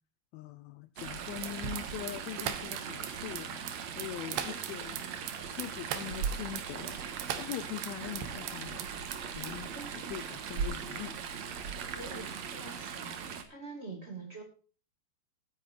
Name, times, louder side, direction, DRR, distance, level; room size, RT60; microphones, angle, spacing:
voice 1, 0.3-3.6 3.9-5.0 5.5-7.0 7.4-8.9 9.3-9.7 10.1-11.2, left 15 dB, 80° left, 13 dB, 2.3 m, -42 dB
Chatter / Stream, 1.0-13.4, right 6 dB, 60° right, 2.0 m, -39 dB
sound 1, 1.4-8.9 9.1-9.7, right 10 dB, 80° right, 3.4 m, -39 dB
voice 2, 11.9-13.2 13.5-14.4, right 3 dB, 20° right, 2 dB, 2.2 m, -45 dB
19.5 x 9.4 x 2.8 m, 0.38 s
omnidirectional pair, 4.8 m